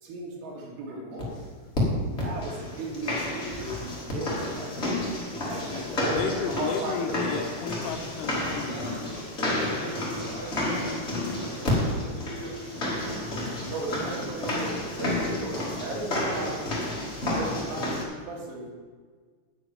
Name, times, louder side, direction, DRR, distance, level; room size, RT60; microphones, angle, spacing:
voice 1, 0.0-1.4 2.1-4.7 5.5-7.4 13.7-16.6 17.3-18.7, right 2 dB, 75° right, -1 dB, 4.4 m, -35 dB
sound 1, 1.2-1.3 1.7-1.8 2.2-18.0, left 1 dB, 50° left, 0.7 m, -31 dB
voice 2, 6.1-8.8, left 7 dB, 85° left, 5 dB, 3.1 m, -33 dB
voice 3, 8.4-13.2 13.9-14.5, right 1 dB, 25° right, -5 dB, 3.3 m, -40 dB
9.5 x 6.2 x 8.6 m, 1.5 s
omnidirectional pair, 5.9 m